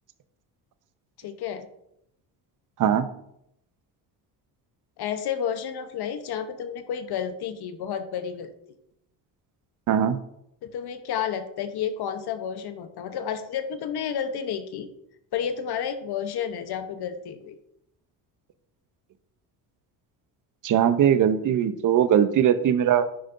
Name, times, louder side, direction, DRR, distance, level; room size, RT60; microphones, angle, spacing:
voice 1, 1.2-1.7 5.0-8.5 10.6-14.9 15.3-17.5, left 8 dB, 60° left, 9 dB, 0.9 m, -31 dB
voice 2, 9.9-10.2 20.6-23.0, right 9 dB, 45° right, 12 dB, 0.7 m, -20 dB
10.5 x 5.1 x 2.6 m, 0.75 s
supercardioid pair, 85°, 44 cm